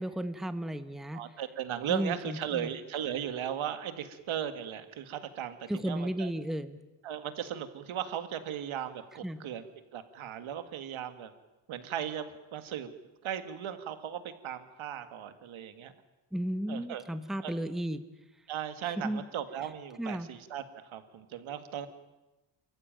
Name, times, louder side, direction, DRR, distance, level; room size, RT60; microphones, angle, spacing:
voice 1, 0.0-1.2 1.9-2.7 5.7-6.8 9.2-9.4 16.3-18.0 19.0-19.2 20.0-20.3, right 1 dB, ahead, 11 dB, 0.9 m, -34 dB
voice 2, 1.1-6.3 7.0-9.6 9.9-11.3 11.7-12.9 13.2-15.9 16.7-17.0 17.4-17.7 18.5-21.9, right 9 dB, 80° right, 10 dB, 2.0 m, -37 dB
29.0 x 15.0 x 9.0 m, 1.0 s
cardioid pair, 135°, 48 cm